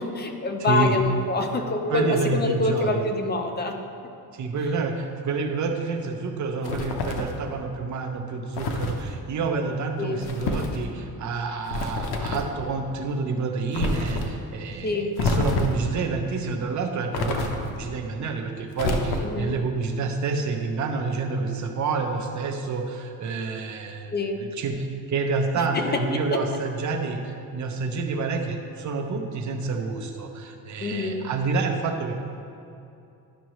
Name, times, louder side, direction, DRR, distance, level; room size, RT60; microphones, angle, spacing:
voice 1, 0.0-3.8 10.0-10.3 14.8-15.2 19.2-19.5 24.1-24.5 25.6-26.4 30.8-31.3, left 3 dB, 25° left, 5 dB, 0.6 m, -26 dB
voice 2, 0.6-1.0 1.9-3.0 4.3-24.1 24.4-32.1, right 4 dB, 50° right, 3 dB, 0.9 m, -28 dB
sound 1, 6.6-7.4 8.6-9.0 10.2-10.8 11.7-12.5 13.7-14.3 15.2-15.9 17.1-17.8 18.7-19.5, left 3 dB, 85° left, 0.9 m, -27 dB
11.5 x 6.1 x 3.1 m, 2.6 s
cardioid pair, 145°, 37 cm